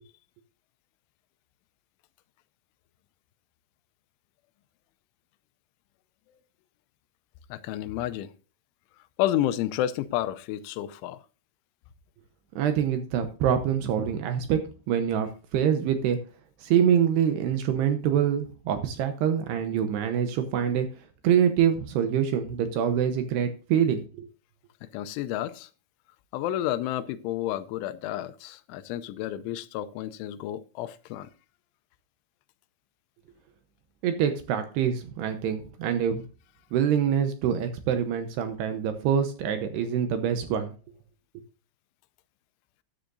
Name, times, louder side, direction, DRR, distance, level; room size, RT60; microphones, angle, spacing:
voice 1, 7.5-8.3 9.2-11.2 24.8-25.7 26.3-31.3, left 12 dB, 85° left, 3.1 m, -30 dB
voice 2, 12.6-14.6 14.9-16.2 16.6-20.9 21.2-24.3 34.0-36.2 36.7-40.7, right 8 dB, 75° right, 2.6 m, -25 dB
13.5 x 10.0 x 2.6 m
omnidirectional pair, 5.5 m